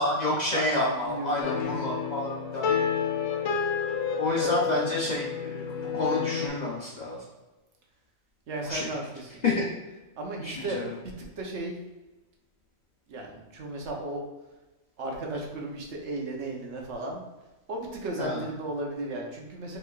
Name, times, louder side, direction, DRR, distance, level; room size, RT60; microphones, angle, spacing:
voice 1, 0.0-2.6 4.2-7.2 8.6-8.9 9.4-9.7 10.4-10.9 18.2-18.4, left 2 dB, 45° left, -4 dB, 0.6 m, -29 dB
voice 2, 0.5-1.4 4.3-4.5 8.5-9.4 10.2-10.9 11.4-11.8 13.1-14.2 15.0-17.2 17.7-19.8, right 2 dB, 65° right, 0 dB, 1.1 m, -35 dB
sound 1, 1.4-6.5, left 7 dB, 80° left, 0.9 m, -29 dB
5.0 x 3.2 x 2.4 m, 1.1 s
omnidirectional pair, 1.3 m